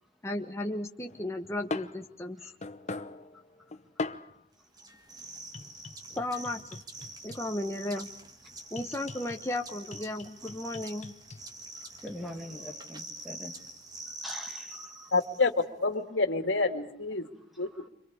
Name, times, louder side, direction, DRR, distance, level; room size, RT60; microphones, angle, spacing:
voice 1, 0.2-2.5 6.2-6.8 7.2-8.1 8.7-11.1, left 1 dB, 15° left, 1.1 m, -35 dB
sound 1, 1.0-4.5 5.5-7.7 8.8-9.5 9.9-11.4 12.1-12.2, left 3 dB, 40° left, 0.9 m, -41 dB
sound 2, 4.7-15.6, right 2 dB, 20° right, 1.7 m, -45 dB
voice 2, 11.8-13.6 14.2-15.1 17.7-17.9, left 1 dB, ahead, 2.2 m, -44 dB
voice 3, 15.1-15.5 15.8-17.3 17.6-17.9, left 3 dB, 90° left, 2.3 m, -28 dB
29.5 x 26.0 x 5.0 m
head